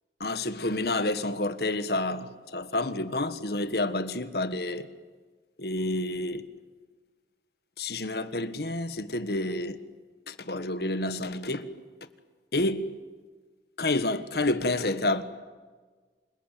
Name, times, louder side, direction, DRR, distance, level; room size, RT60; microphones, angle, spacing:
voice 1, 0.2-4.9 5.6-6.4 7.8-9.8 10.3-11.7 12.5-12.8 13.8-15.2, left 2 dB, 65° left, 1.5 m, -29 dB
28.5 x 21.0 x 9.2 m
head